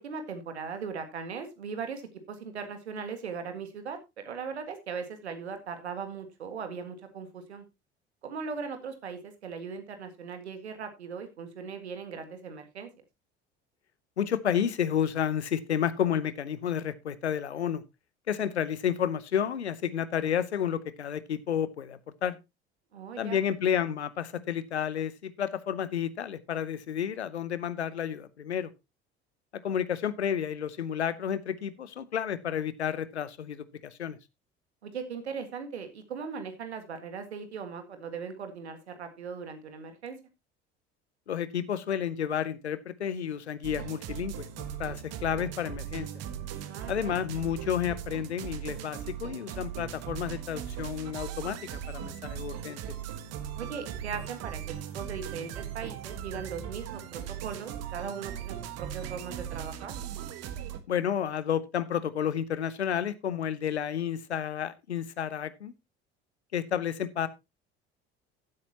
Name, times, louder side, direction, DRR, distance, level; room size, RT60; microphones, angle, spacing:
voice 1, 0.0-7.6 8.2-12.9 22.9-23.4 34.8-40.2 46.6-47.2 53.6-54.6 54.9-59.9, right 6 dB, 80° right, 8 dB, 1.8 m, -39 dB
voice 2, 14.2-17.8 18.3-22.4 23.2-28.7 29.5-34.2 41.3-46.1 46.9-51.6 51.9-52.8 60.9-65.7 66.5-67.3, left 9 dB, 85° left, 17 dB, 0.8 m, -31 dB
sound 1, 43.6-60.8, right 10 dB, 50° right, 1.4 m, -39 dB
15.0 x 8.4 x 2.9 m, 0.23 s
figure-of-eight pair, 65°, 33 cm